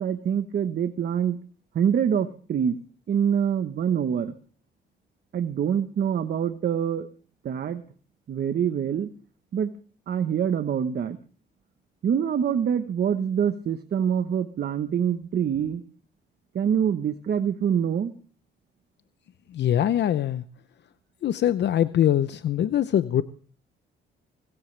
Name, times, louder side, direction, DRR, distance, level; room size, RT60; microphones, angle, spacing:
voice 1, 0.0-1.4 1.7-2.8 3.1-4.3 5.3-7.1 7.4-7.8 8.3-9.1 9.5-9.7 10.1-11.2 12.0-15.8 16.5-18.1, right 8 dB, 55° right, 9 dB, 1.1 m, -25 dB
voice 2, 19.5-20.4 21.2-23.2, left 11 dB, 60° left, 13 dB, 0.7 m, -23 dB
23.5 x 14.0 x 3.3 m, 0.42 s
cardioid pair, 90°, 20 cm